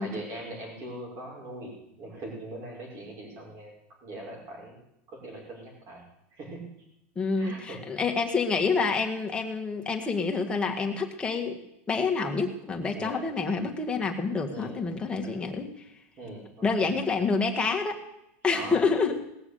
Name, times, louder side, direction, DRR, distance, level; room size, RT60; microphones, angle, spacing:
voice 1, 0.0-3.7 4.0-4.8 5.1-6.0 6.3-6.6 7.4-7.8 12.9-13.3 14.5-14.9 15.2-15.3 16.2-17.0 18.5-18.8, right 1 dB, 40° right, -1 dB, 5.8 m, -41 dB
voice 2, 7.2-11.6 11.9-15.9 16.6-18.0 18.4-19.2, left 4 dB, 15° left, 2 dB, 1.7 m, -28 dB
18.5 x 7.0 x 8.3 m, 0.83 s
supercardioid pair, 135°, 7 cm